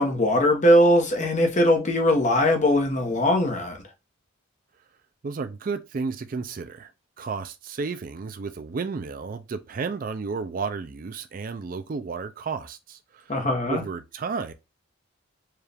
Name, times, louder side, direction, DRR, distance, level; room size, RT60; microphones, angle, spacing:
voice 1, 0.0-3.8 13.3-13.8, left 1 dB, 35° left, 1.0 m, -20 dB
voice 2, 5.2-6.9 7.2-13.3 13.7-14.5, right 4 dB, 40° right, 0.4 m, -32 dB
4.6 x 2.4 x 3.3 m
head